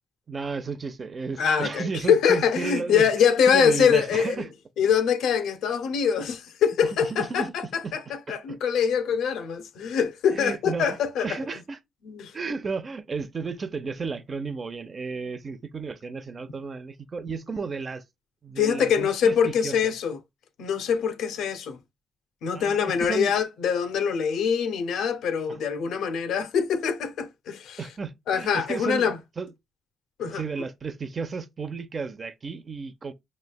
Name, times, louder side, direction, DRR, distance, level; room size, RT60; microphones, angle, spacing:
voice 1, 0.3-4.5 6.8-7.5 7.8-7.9 8.3-8.6 10.3-10.9 11.2-11.8 12.3-18.0 18.4-19.9 22.5-23.4 25.5-25.6 27.8-29.5 30.3-33.1, right 4 dB, 35° right, 0.6 m, -33 dB
voice 2, 1.4-4.4 4.8-8.0 8.3-11.3 12.0-12.3 18.6-20.2 20.6-21.8 22.4-27.8 28.3-29.2 30.2-30.4, left 7 dB, 80° left, 0.7 m, -24 dB
5.4 x 3.2 x 2.3 m
cardioid pair, 90°, 0 cm